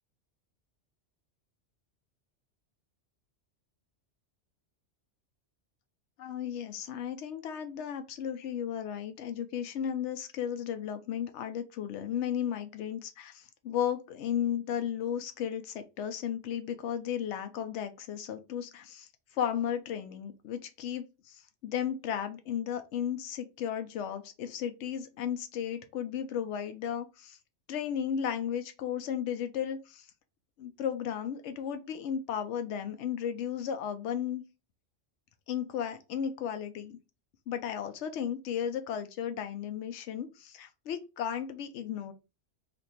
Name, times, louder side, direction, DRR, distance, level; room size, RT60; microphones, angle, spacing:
voice 1, 6.2-27.4 27.7-30.1 30.6-34.4 35.5-37.0 37.5-42.1, left 9 dB, 85° left, 0.9 m, -34 dB
2.9 x 2.6 x 4.2 m
omnidirectional pair, 1.2 m